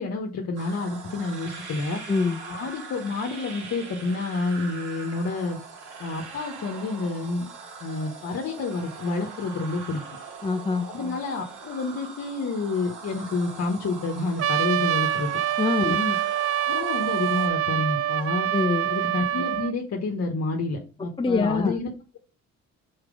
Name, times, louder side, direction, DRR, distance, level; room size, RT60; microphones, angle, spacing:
voice 1, 0.0-2.0 2.5-5.6 6.0-7.5 7.8-10.0 10.9-15.3 15.8-16.2 16.7-18.5 18.9-22.2, left 3 dB, 55° left, 2 dB, 1.3 m, -29 dB
sound 1, 0.6-17.5, right 5 dB, 90° right, 2.2 m, -42 dB
voice 2, 2.1-2.4 10.4-10.9 15.6-16.0 18.5-18.9 21.2-21.8, left 4 dB, 15° left, 6 dB, 0.5 m, -24 dB
Trumpet, 14.4-19.7, right 11 dB, 50° right, 0.4 m, -25 dB
5.8 x 4.4 x 5.1 m, 0.35 s
cardioid pair, 90°, 30 cm